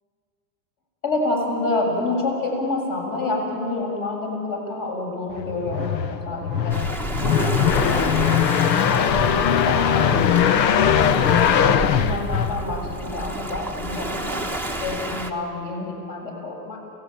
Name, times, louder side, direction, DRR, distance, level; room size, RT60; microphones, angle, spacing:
voice 1, 1.0-6.8 7.2-11.6 11.9-16.8, left 2 dB, 40° left, 0 dB, 7.2 m, -28 dB
sound 1, 5.4-13.0, left 8 dB, 85° left, 1.2 m, -20 dB
Waves surf, 6.7-15.3, right 2 dB, 5° left, 1.1 m, -31 dB
27.5 x 17.0 x 9.0 m, 2.5 s
supercardioid pair, 140°, 49 cm